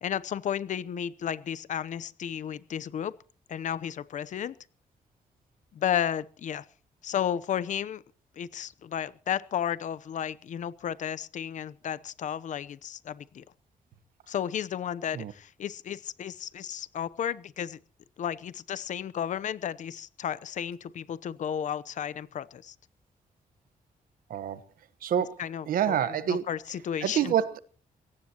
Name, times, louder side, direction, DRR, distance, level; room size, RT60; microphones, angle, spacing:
voice 1, 0.0-3.1 3.5-4.5 5.7-6.6 7.0-8.0 8.4-13.4 14.3-17.8 18.2-22.7 25.4-27.3, left 9 dB, 60° left, 0.8 m, -33 dB
voice 2, 24.3-24.6 25.0-26.5 27.0-27.6, right 9 dB, 80° right, 1.2 m, -27 dB
22.5 x 17.5 x 3.0 m
wide cardioid pair, 165°, 15 cm